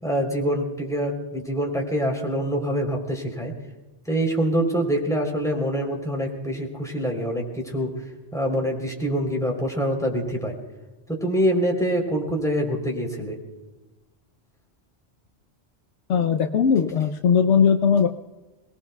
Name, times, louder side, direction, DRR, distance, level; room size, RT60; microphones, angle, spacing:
voice 1, 0.0-3.5 4.1-7.9 8.3-10.5 11.1-13.4, equal, 5° left, 0 dB, 3.5 m, -25 dB
voice 2, 16.1-18.1, left 6 dB, 90° left, 6 dB, 1.1 m, -19 dB
28.5 x 19.0 x 2.3 m, 1.1 s
omnidirectional pair, 1.2 m